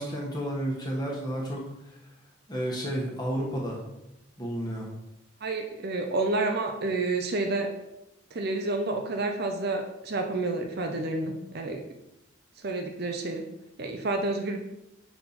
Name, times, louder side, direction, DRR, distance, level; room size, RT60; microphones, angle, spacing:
voice 1, 0.0-1.6 2.5-3.8 4.4-4.9, right 1 dB, 20° left, -2 dB, 1.3 m, -31 dB
voice 2, 5.4-7.7 8.3-11.8 12.6-13.4 13.8-14.6, right 2 dB, 50° right, 3 dB, 0.6 m, -29 dB
5.7 x 4.4 x 4.2 m, 0.88 s
head